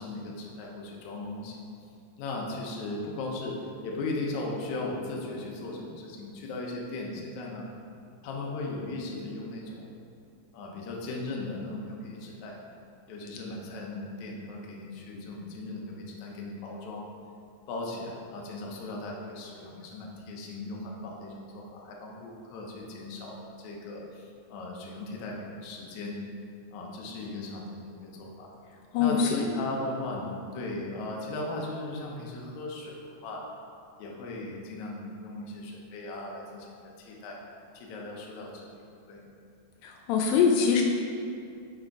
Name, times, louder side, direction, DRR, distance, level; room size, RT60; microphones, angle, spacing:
voice 1, 0.0-1.6 2.2-7.7 8.2-9.9 10.5-12.6 13.1-17.1 17.7-26.2 26.7-28.5 29.0-33.5 34.0-37.4 37.7-38.7 39.1-39.2, left 2 dB, 65° left, -2 dB, 2.1 m, -37 dB
voice 2, 28.9-29.5 39.8-40.8, left 6 dB, 85° left, 1 dB, 2.3 m, -23 dB
6.6 x 6.2 x 4.7 m, 2.5 s
omnidirectional pair, 3.9 m